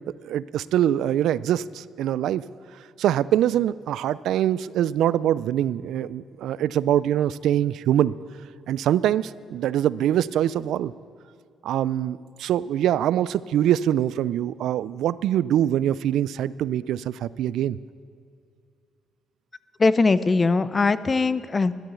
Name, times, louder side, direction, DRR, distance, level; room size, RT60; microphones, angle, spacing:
voice 1, 0.2-2.4 3.0-8.1 8.7-10.9 11.6-17.8, right 11 dB, 80° right, 18 dB, 0.3 m, -23 dB
voice 2, 19.8-21.7, left 3 dB, 30° left, 15 dB, 0.5 m, -20 dB
12.0 x 11.5 x 7.0 m, 2.2 s
cardioid pair, 90°, 0 cm